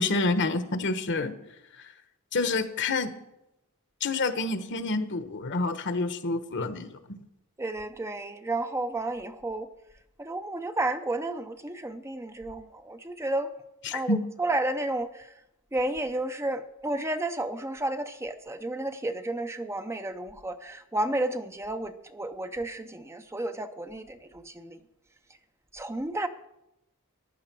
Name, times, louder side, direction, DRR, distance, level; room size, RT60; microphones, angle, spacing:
voice 1, 0.0-1.3 1.7-1.9 2.3-3.1 4.0-7.0 13.8-14.2, left 3 dB, 55° left, 11 dB, 1.2 m, -28 dB
voice 2, 7.6-9.7 10.2-13.5 13.9-15.3 15.7-24.8 25.7-26.3, right 2 dB, 10° right, 9 dB, 0.6 m, -32 dB
14.5 x 11.0 x 6.1 m, 0.87 s
head